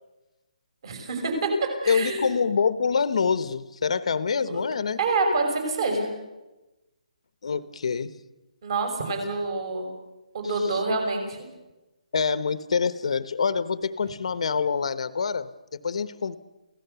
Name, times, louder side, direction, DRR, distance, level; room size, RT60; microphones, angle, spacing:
voice 1, 0.8-1.5 1.8-2.3 4.5-4.6 5.0-6.1 8.6-9.9 10.3-11.4, right 3 dB, 40° right, 4 dB, 6.0 m, -27 dB
voice 2, 1.9-5.0 7.4-8.1 10.4-10.8 12.1-15.5 15.8-16.4, left 5 dB, 55° left, 15 dB, 0.9 m, -26 dB
28.5 x 16.5 x 6.9 m, 1.0 s
hypercardioid pair, 175°, 4 cm